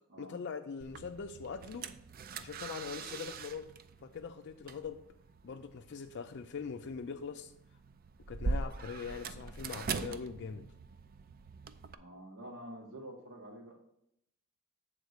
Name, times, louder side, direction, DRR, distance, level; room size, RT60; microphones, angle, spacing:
voice 1, 0.2-1.9 2.4-3.7 4.0-5.0 5.4-7.5 8.3-10.7, left 5 dB, 55° left, 0.4 m, -42 dB
sound 1, 0.8-11.9, right 4 dB, 45° right, 0.4 m, -42 dB
voice 2, 12.0-13.8, right 1 dB, 65° right, 1.5 m, -48 dB
8.1 x 3.7 x 6.4 m
head